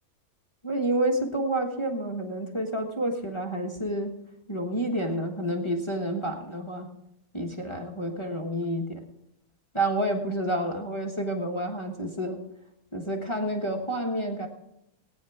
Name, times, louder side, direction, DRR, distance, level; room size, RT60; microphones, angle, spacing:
voice 1, 0.6-4.1 4.5-6.9 7.3-9.0 9.7-12.4 12.9-14.5, right 1 dB, 20° left, 0 dB, 1.4 m, -29 dB
18.5 x 9.6 x 4.9 m, 0.84 s
omnidirectional pair, 1.6 m